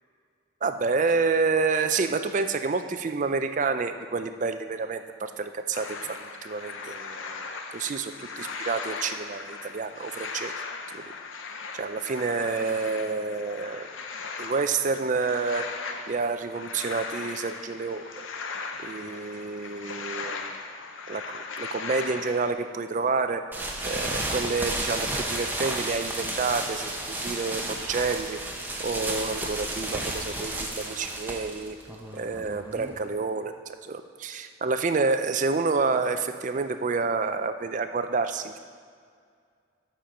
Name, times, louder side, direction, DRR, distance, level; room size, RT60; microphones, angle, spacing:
voice 1, 0.6-10.5 10.9-11.0 11.7-13.9 14.4-15.7 16.1-18.3 18.8-20.5 21.1-23.4 23.8-28.4 28.8-31.8 32.1-33.5 33.8-38.6, right 4 dB, 40° right, 9 dB, 0.4 m, -29 dB
sound 1, 5.7-22.5, left 4 dB, 75° left, 0.6 m, -38 dB
sound 2, 23.5-33.1, right 1 dB, 10° right, 0.7 m, -32 dB
13.0 x 4.4 x 5.0 m, 2.1 s
head